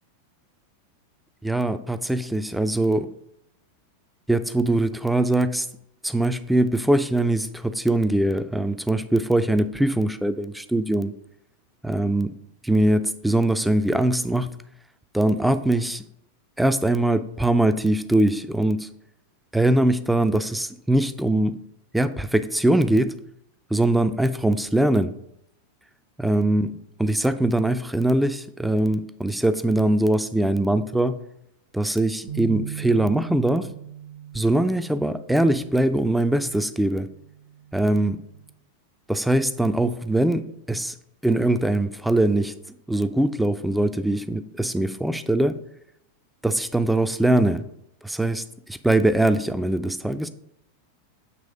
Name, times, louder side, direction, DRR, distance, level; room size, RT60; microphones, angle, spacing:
voice 1, 1.4-3.1 4.3-5.7 6.0-11.1 11.8-12.3 12.6-14.5 15.1-16.0 16.6-18.9 19.5-21.6 21.9-23.2 23.7-25.2 26.2-26.7 27.0-31.2 31.7-33.7 34.3-37.1 37.7-38.2 39.1-40.9 41.2-42.5 42.9-45.6 46.4-47.7 48.0-50.3, right 1 dB, 5° right, 0.4 m, -22 dB
sound 1, 32.3-38.5, right 10 dB, 60° right, 0.9 m, -40 dB
8.3 x 3.2 x 5.0 m
figure-of-eight pair, 90°, 0 cm